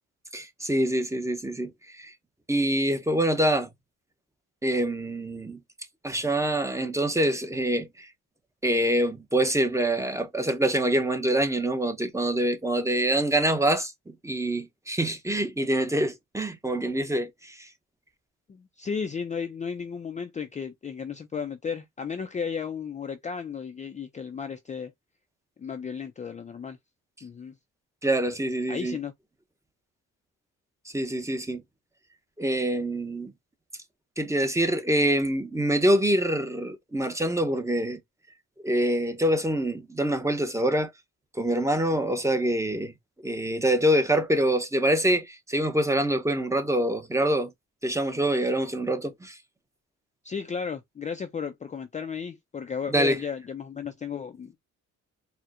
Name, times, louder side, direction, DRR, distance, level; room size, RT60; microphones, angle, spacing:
voice 1, 0.3-1.7 2.0-2.1 2.5-3.7 4.6-5.6 6.0-8.1 8.6-13.9 14.2-17.3 28.0-29.0 30.9-31.6 32.4-33.3 34.2-38.0 38.6-40.9 41.4-42.9 43.2-47.5 47.8-49.3 52.9-53.2, right 1 dB, 10° right, 0.7 m, -25 dB
voice 2, 18.5-24.9 25.6-26.8 27.2-27.5 28.7-29.1 42.1-42.2 50.2-54.6, left 6 dB, 25° left, 0.4 m, -34 dB
4.2 x 2.1 x 2.4 m
cardioid pair, 90°, 30 cm